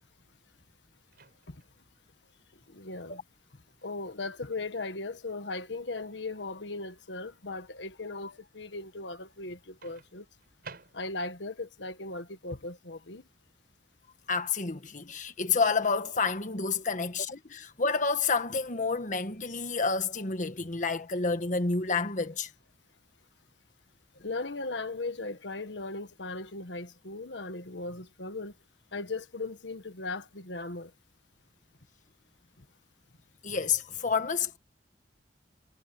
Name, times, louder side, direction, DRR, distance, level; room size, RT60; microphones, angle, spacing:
Microwave oven, 1.1-1.8 3.8-4.0 9.8-11.4, right 4 dB, 55° right, 5.9 m, -51 dB
voice 1, 2.7-3.2 3.8-10.3 10.9-13.2 24.2-28.5 28.9-30.9, left 3 dB, 75° left, 1.6 m, -38 dB
voice 2, 14.3-22.5 33.4-34.6, left 4 dB, 45° left, 1.5 m, -29 dB
head